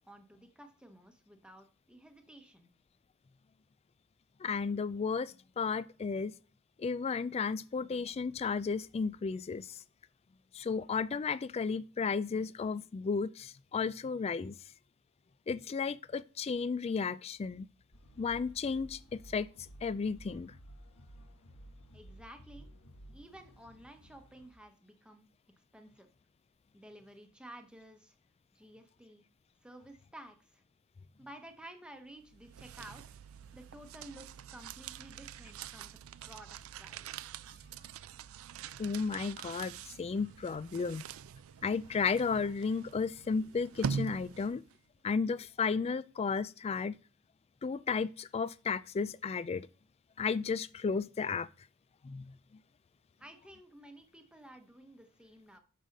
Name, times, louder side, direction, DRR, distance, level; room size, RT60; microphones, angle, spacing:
voice 1, 0.0-2.7 21.9-22.7 23.1-25.3 25.7-26.1 26.7-28.1 28.5-29.2 29.6-30.6 31.2-33.0 33.5-36.0 36.2-37.3 53.2-55.6, right 1 dB, 5° right, 1.0 m, -53 dB
voice 2, 4.4-6.4 6.8-9.8 10.5-14.6 15.5-17.7 18.2-19.5 19.8-20.5 38.8-41.0 41.6-44.6 45.0-47.0 47.6-49.7 50.2-51.5 52.0-52.3, left 5 dB, 30° left, 0.3 m, -33 dB
sound 1, 17.9-24.5, equal, 85° left, 1.3 m, -54 dB
sound 2, 32.2-44.7, right 6 dB, 75° right, 0.4 m, -44 dB
6.5 x 6.2 x 5.3 m
head